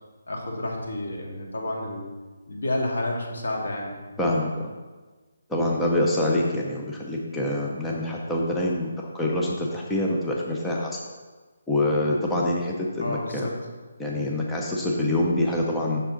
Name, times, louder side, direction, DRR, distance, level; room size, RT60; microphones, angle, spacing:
voice 1, 0.3-2.1 2.5-4.0 13.0-13.5, left 1 dB, 85° left, -1 dB, 2.0 m, -30 dB
voice 2, 4.2-4.7 5.5-11.0 11.7-13.5 14.0-16.0, left 1 dB, 5° left, -3 dB, 0.4 m, -25 dB
7.4 x 6.5 x 3.8 m, 1.3 s
hypercardioid pair, 180°, 0 cm